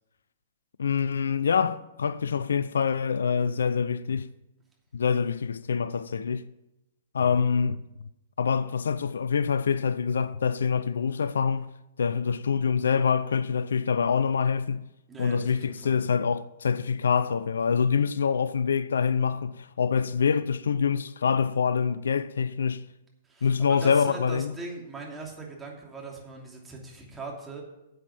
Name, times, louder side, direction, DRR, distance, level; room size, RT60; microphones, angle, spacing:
voice 1, 0.8-4.3 4.9-6.5 7.1-7.8 8.4-11.7 12.0-14.9 15.2-22.8 23.4-24.5, left 6 dB, 70° left, 0.4 m, -25 dB
voice 2, 15.1-15.9 23.2-27.6, right 3 dB, 10° right, 2.8 m, -40 dB
10.5 x 7.8 x 7.1 m
figure-of-eight pair, 110°, 0 cm